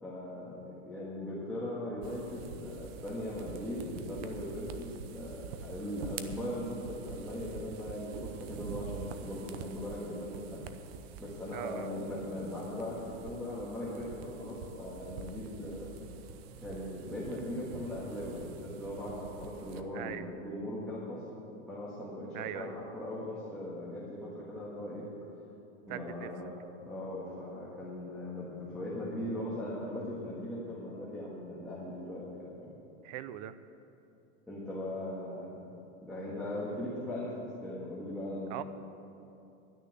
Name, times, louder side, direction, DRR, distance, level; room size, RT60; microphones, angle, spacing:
voice 1, 0.0-10.6 11.2-13.0 13.2-15.9 16.6-21.2 21.7-25.0 25.9-26.5 26.8-32.7 34.5-35.7 36.0-37.4 37.6-38.6, left 1 dB, ahead, -9 dB, 1.7 m, -39 dB
sound 1, 2.0-19.8, right 6 dB, 55° right, 0.8 m, -46 dB
voice 2, 11.5-11.9 19.9-20.3 22.3-22.7 25.9-26.3 33.0-33.5 38.5-38.6, right 12 dB, 40° right, 13 dB, 0.5 m, -40 dB
11.5 x 6.6 x 9.2 m, 2.8 s
supercardioid pair, 160°, 37 cm